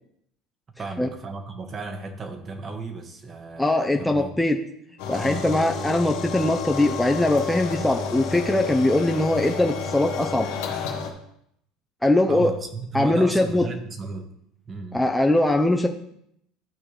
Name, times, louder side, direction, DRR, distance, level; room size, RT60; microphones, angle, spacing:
voice 1, 0.8-4.4 5.2-5.7 12.3-14.3 14.7-15.1, right 4 dB, 35° right, 6 dB, 1.3 m, -35 dB
voice 2, 3.6-4.6 5.1-10.5 12.0-12.5 12.9-13.6 14.9-15.9, left 1 dB, 5° left, 2 dB, 0.7 m, -21 dB
sound 1, 5.0-11.1, left 5 dB, 80° left, 1.4 m, -31 dB
Insect, 5.1-10.1, left 7 dB, 60° left, 2.4 m, -47 dB
12.0 x 4.4 x 3.4 m, 0.74 s
hypercardioid pair, 85°, 0 cm